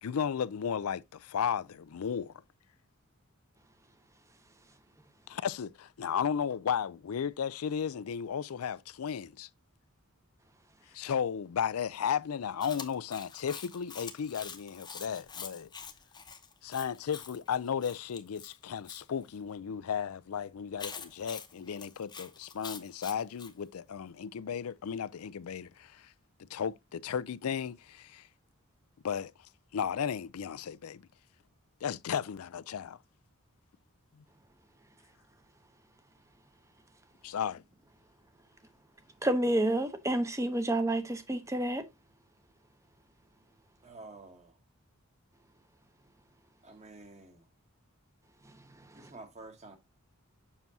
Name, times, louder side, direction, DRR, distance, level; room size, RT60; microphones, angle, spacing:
voice 1, 0.0-2.3 5.3-9.5 10.9-15.7 16.6-26.1 26.5-28.3 29.0-29.3 29.7-31.0 31.8-33.0 37.2-37.6, left 7 dB, 85° left, 0.4 m, -34 dB
Chewing mastication, 12.6-19.0 20.8-23.5, left 6 dB, 20° left, 0.8 m, -45 dB
voice 2, 39.2-41.9 48.9-49.1, right 1 dB, 15° right, 0.8 m, -29 dB
voice 3, 43.8-44.6 46.6-47.4 48.9-49.8, right 2 dB, 30° right, 1.3 m, -50 dB
7.2 x 6.0 x 2.7 m
head